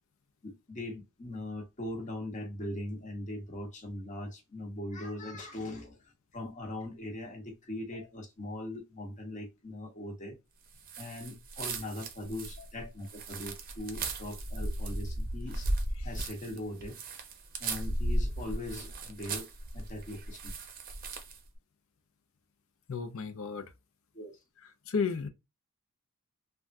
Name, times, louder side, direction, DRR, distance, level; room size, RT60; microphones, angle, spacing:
voice 1, 0.4-10.4 11.0-15.7 16.0-17.0 17.6-19.5 19.7-20.5 24.1-24.4, left 1 dB, 35° left, 1.0 m, -40 dB
sound 1, 10.8-21.5, right 1 dB, 40° right, 0.6 m, -36 dB
voice 2, 22.9-23.7 24.9-25.3, left 5 dB, 65° left, 0.5 m, -32 dB
3.4 x 2.3 x 2.6 m
head